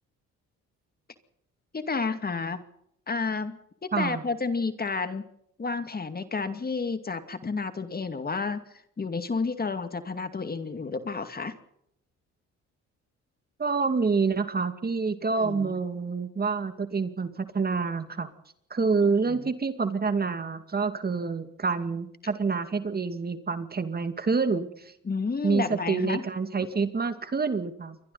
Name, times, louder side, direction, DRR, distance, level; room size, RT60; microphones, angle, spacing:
voice 1, 1.7-2.6 3.1-5.3 5.6-8.6 9.0-11.5 15.3-15.8 19.3-19.5 25.0-26.2, left 4 dB, 30° left, 9 dB, 2.4 m, -31 dB
voice 2, 3.9-4.2 13.6-18.3 18.7-24.9 25.4-28.1, right 4 dB, 30° right, 9 dB, 2.4 m, -27 dB
28.5 x 23.5 x 4.1 m, 0.74 s
cardioid pair, 90°, 30 cm